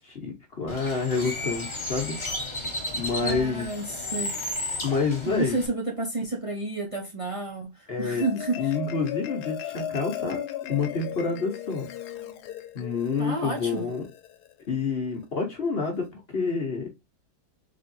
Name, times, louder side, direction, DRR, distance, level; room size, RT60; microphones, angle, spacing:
voice 1, 0.0-2.1 2.9-3.7 4.8-5.6 7.9-8.2 8.6-10.4 10.7-11.9 12.7-14.1 14.7-16.9, left 4 dB, 45° left, 1.0 m, -28 dB
Bird, 0.7-5.7, left 2 dB, 25° left, 0.7 m, -33 dB
voice 2, 3.2-3.8 4.1-4.3 5.3-7.7 8.0-8.6 13.2-13.9, right 2 dB, 45° right, 0.4 m, -30 dB
Marimba xylophone, 7.9-14.5, left 11 dB, 85° left, 1.2 m, -37 dB
4.2 x 3.4 x 2.6 m
omnidirectional pair, 1.7 m